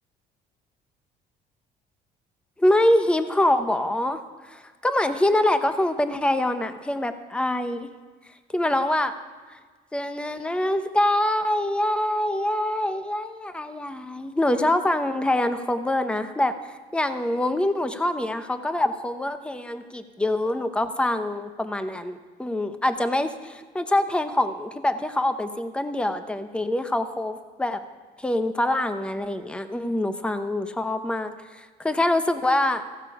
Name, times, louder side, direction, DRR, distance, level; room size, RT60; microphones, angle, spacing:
voice 1, 2.6-4.2 4.5-7.9 8.5-9.1 9.5-9.6 9.9-27.8 28.2-32.8, left 1 dB, 5° left, 9 dB, 0.8 m, -25 dB
15.5 x 12.5 x 4.8 m, 1.4 s
cardioid pair, 110°, 17 cm